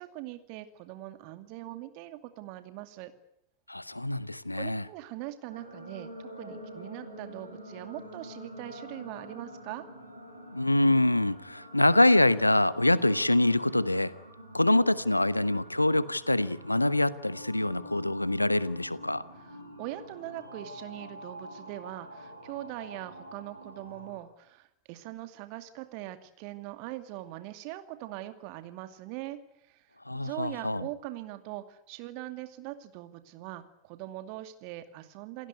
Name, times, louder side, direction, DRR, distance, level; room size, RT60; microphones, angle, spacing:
voice 1, 0.0-3.1 4.5-9.8 19.8-29.4 29.7-29.9 30.1-35.5, right 15 dB, 45° right, 2.4 m, -41 dB
voice 2, 3.7-4.9 10.5-14.1 14.5-19.2 30.1-30.9, left 1 dB, 85° left, 1.0 m, -25 dB
sound 1, 5.5-24.2, equal, 85° right, 5.4 m, -47 dB
28.5 x 16.0 x 9.7 m
figure-of-eight pair, 90°, 0 cm